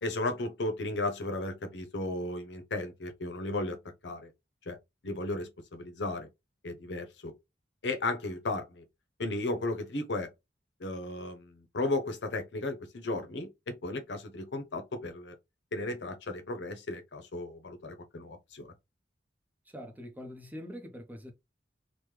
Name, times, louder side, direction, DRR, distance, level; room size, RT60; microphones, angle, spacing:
voice 1, 0.0-3.8 4.0-4.3 4.7-4.8 5.0-6.3 6.6-7.3 7.8-8.8 9.2-10.3 10.8-15.3 15.7-18.7, left 2 dB, 80° left, 0.7 m, -35 dB
voice 2, 19.7-21.3, equal, 10° right, 0.5 m, -44 dB
3.1 x 2.1 x 3.2 m
head